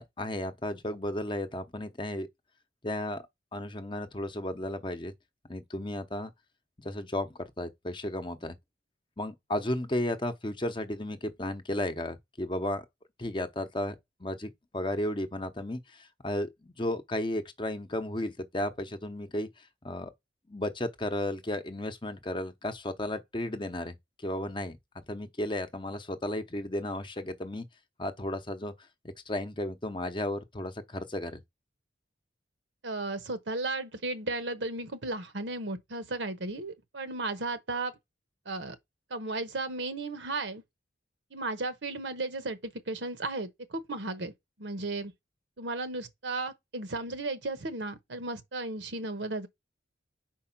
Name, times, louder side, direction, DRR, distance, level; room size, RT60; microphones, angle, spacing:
voice 1, 0.0-2.3 2.8-3.2 3.5-5.1 5.5-6.3 6.8-8.5 9.2-12.8 13.2-13.9 14.2-20.1 20.5-23.9 24.2-24.8 25.1-27.6 28.0-28.7 29.3-31.4, left 1 dB, 25° left, 0.8 m, -34 dB
voice 2, 32.8-37.9 38.5-38.8 39.1-40.6 41.3-44.3 44.6-45.1 45.6-49.5, right 2 dB, 70° right, 1.0 m, -35 dB
4.8 x 4.7 x 5.9 m
head